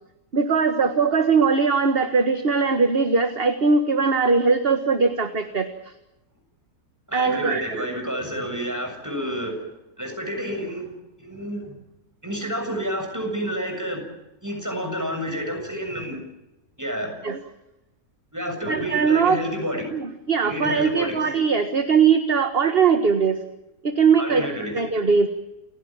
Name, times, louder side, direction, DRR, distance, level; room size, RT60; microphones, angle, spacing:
voice 1, 0.3-5.7 7.1-8.0 17.2-17.4 18.7-19.4 19.9-20.0 20.3-23.4 23.8-25.3, right 5 dB, 40° right, 8 dB, 1.7 m, -20 dB
voice 2, 7.1-9.7 10.0-10.9 11.2-11.7 12.2-14.1 14.4-16.2 16.8-17.2 18.3-19.9 20.4-21.2 24.2-24.7, equal, 10° right, 3 dB, 7.1 m, -29 dB
29.0 x 16.5 x 8.7 m, 0.94 s
omnidirectional pair, 1.7 m